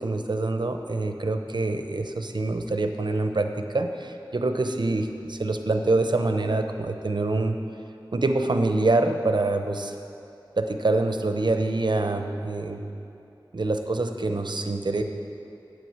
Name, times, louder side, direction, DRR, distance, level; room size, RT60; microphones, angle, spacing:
voice 1, 0.0-7.6 8.1-9.9 10.6-12.8 13.5-15.0, right 2 dB, 60° right, 6 dB, 0.8 m, -25 dB
9.3 x 8.6 x 7.3 m, 2.7 s
wide cardioid pair, 55°, 8 cm